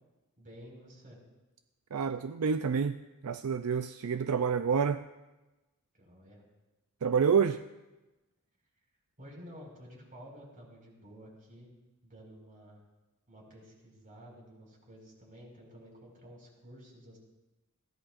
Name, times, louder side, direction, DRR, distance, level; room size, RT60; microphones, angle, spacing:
voice 1, 0.4-1.2 6.0-6.4 9.2-11.7 12.0-12.8 13.3-17.2, equal, 40° right, -1 dB, 4.9 m, -52 dB
voice 2, 1.9-3.0 3.2-5.0 7.0-7.6, right 6 dB, 75° right, 10 dB, 0.4 m, -28 dB
21.5 x 16.5 x 2.5 m, 1.1 s
head